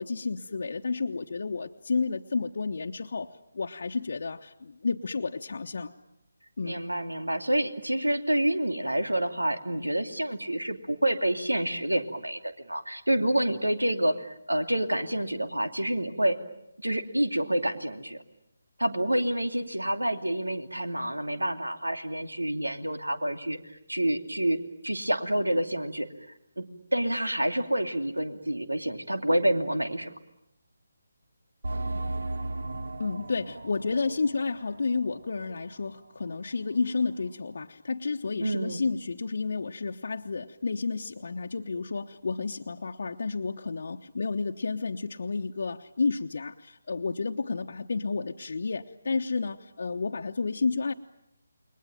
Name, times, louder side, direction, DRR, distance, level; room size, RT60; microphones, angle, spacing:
voice 1, 0.0-5.9 6.6-6.8 33.0-50.9, left 4 dB, 55° left, 2 dB, 1.1 m, -31 dB
voice 2, 6.6-16.4 16.8-18.2 18.8-24.6 24.8-26.1 26.6-30.2 38.4-38.8, right 1 dB, 90° right, 8 dB, 2.7 m, -28 dB
sound 1, 31.6-35.9 36.2-36.3 36.9-37.0, right 2 dB, 65° right, 1.9 m, -36 dB
29.5 x 22.5 x 9.1 m, 0.81 s
figure-of-eight pair, 150°, 0 cm